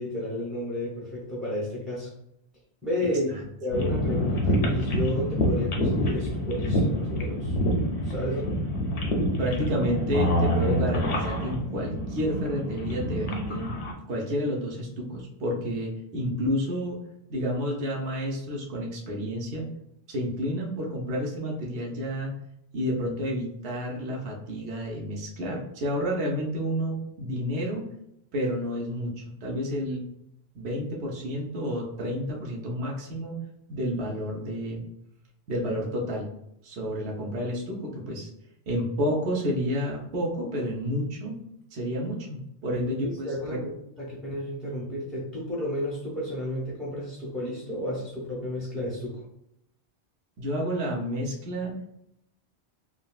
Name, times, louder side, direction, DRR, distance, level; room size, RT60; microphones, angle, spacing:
voice 1, 0.0-2.1 2.8-3.3 3.6-7.6 8.0-8.6 42.7-43.7 44.0-49.2, left 1 dB, ahead, -5 dB, 0.6 m, -32 dB
sound 1, 3.7-13.9, equal, 80° left, 0.9 m, -27 dB
voice 2, 9.4-13.8 14.1-17.0 17.3-19.7 20.1-22.3 22.7-27.8 28.3-29.1 29.4-30.0 30.5-33.4 33.7-34.8 35.5-36.3 36.6-38.3 38.7-41.3 41.7-43.6 50.4-51.8, equal, 75° right, -2 dB, 1.0 m, -30 dB
3.7 x 2.1 x 2.3 m, 0.78 s
omnidirectional pair, 1.1 m